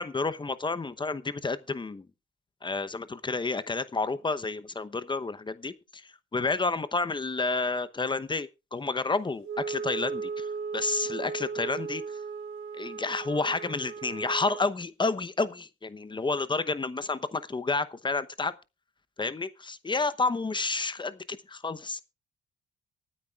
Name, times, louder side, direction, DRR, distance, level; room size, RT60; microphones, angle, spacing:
voice 1, 0.0-2.0 2.6-10.5 10.7-12.0 12.7-18.5 19.2-22.0, left 3 dB, 25° left, 0.9 m, -30 dB
Wind instrument woodwind instrument, 9.4-14.7, right 5 dB, 70° right, 3.4 m, -36 dB
23.5 x 9.6 x 2.4 m
cardioid pair, 90°, 20 cm